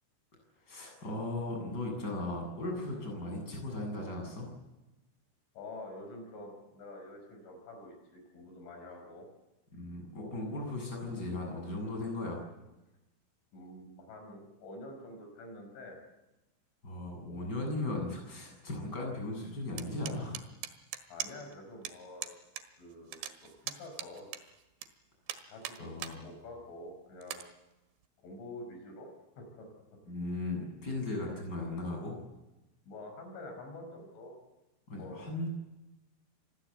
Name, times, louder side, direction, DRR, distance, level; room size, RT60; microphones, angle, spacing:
voice 1, 0.7-4.5 9.7-12.4 16.8-20.4 25.8-26.3 30.1-32.2 34.9-35.5, left 2 dB, 20° left, 1 dB, 8.3 m, -37 dB
voice 2, 5.6-9.3 13.5-16.0 21.1-22.3 22.8-24.3 25.5-27.4 28.2-29.1 29.4-29.7 32.9-34.4 34.9-35.3, left 2 dB, 70° left, 4 dB, 7.5 m, -47 dB
sound 1, 19.8-21.5 21.8-21.9 22.2-22.6 22.9-24.9 25.3-26.2 26.6-26.7 27.2-27.4, right 11 dB, 65° right, 3.4 m, -40 dB
28.0 x 21.5 x 8.2 m, 1.0 s
omnidirectional pair, 5.7 m